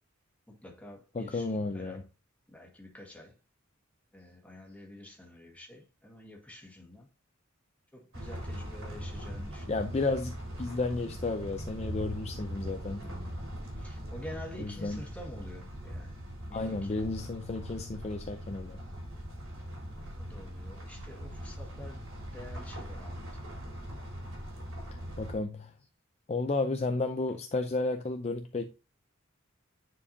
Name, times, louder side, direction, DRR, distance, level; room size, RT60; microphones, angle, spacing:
voice 1, 0.5-2.1 2.5-3.4 4.1-7.1 7.9-9.9 13.0-13.5 13.8-16.2 16.5-17.0 20.1-23.3, left 1 dB, 5° left, 1.8 m, -48 dB
voice 2, 1.1-2.0 9.7-13.0 14.6-15.0 16.5-18.8 25.2-25.7 26.3-28.7, left 3 dB, 30° left, 0.5 m, -32 dB
sound 1, 8.1-25.3, equal, 75° right, 3.6 m, -41 dB
9.6 x 4.6 x 2.7 m
head